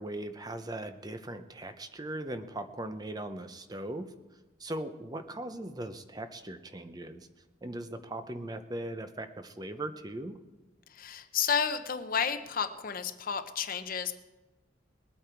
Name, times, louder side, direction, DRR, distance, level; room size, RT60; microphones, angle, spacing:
voice 1, 0.0-4.1 4.6-7.3 7.6-10.4, right 1 dB, 20° right, 9 dB, 0.6 m, -39 dB
voice 2, 10.9-14.1, left 7 dB, 45° left, 10 dB, 0.7 m, -31 dB
20.5 x 8.5 x 4.5 m, 1.1 s
head